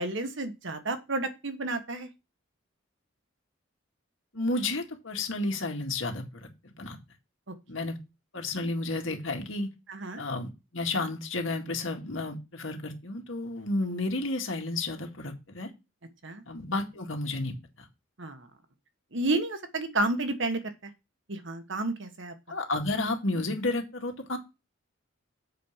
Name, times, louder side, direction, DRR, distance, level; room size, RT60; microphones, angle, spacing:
voice 1, 0.0-2.1 9.9-10.2 16.2-16.4 18.2-18.4 19.1-20.6 21.3-22.3, right 2 dB, 65° right, 8 dB, 1.5 m, -31 dB
voice 2, 4.3-7.0 7.7-8.0 8.3-9.7 10.2-15.7 16.5-17.5 22.5-24.4, left 2 dB, 70° left, 3 dB, 2.1 m, -32 dB
7.5 x 5.2 x 7.3 m, 0.25 s
head